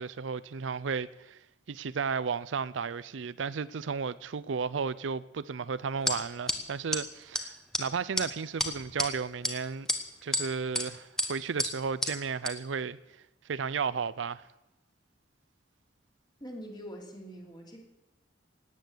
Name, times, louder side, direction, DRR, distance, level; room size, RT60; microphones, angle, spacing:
voice 1, 0.0-1.4 1.7-9.9 10.2-13.0 13.4-14.5, right 5 dB, 80° right, 0.5 m, -33 dB
sound 1, 6.1-6.2 6.5-6.6 6.9-7.0 7.3-7.4 7.7-7.8 8.2-8.3 8.6-9.1 9.4-9.5 9.9-10.4 10.7-10.9 11.2-11.3 11.6-11.7 12.0-12.1 12.4-12.5, left 1 dB, 5° left, 1.3 m, -29 dB
voice 2, 16.4-17.8, equal, 25° left, 3.2 m, -44 dB
17.5 x 9.1 x 8.0 m
head